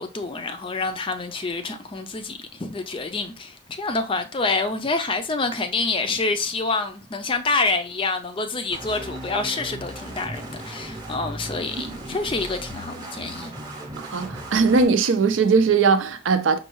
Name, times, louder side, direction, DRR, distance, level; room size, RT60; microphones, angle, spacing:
voice 1, 0.0-13.5, left 3 dB, 25° left, 0.4 m, -27 dB
sound 1, 8.7-14.8, right 1 dB, 20° right, 0.7 m, -37 dB
voice 2, 14.0-16.6, right 5 dB, 75° right, 0.4 m, -20 dB
5.3 x 2.3 x 3.0 m
head